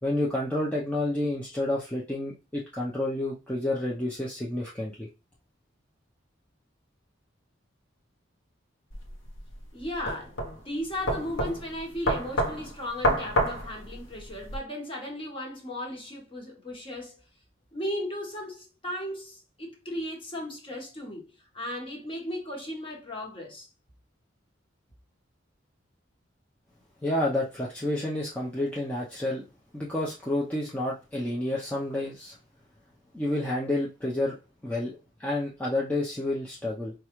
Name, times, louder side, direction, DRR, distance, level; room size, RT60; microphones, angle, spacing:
voice 1, 0.0-5.1 27.0-29.4 29.7-32.4 33.1-34.4 34.6-36.9, left 1 dB, 10° left, 0.5 m, -29 dB
sound 1, 8.9-14.6, equal, 75° left, 0.8 m, -29 dB
voice 2, 9.7-17.2 17.7-23.7, left 1 dB, 30° left, 1.1 m, -36 dB
4.5 x 2.4 x 3.0 m
head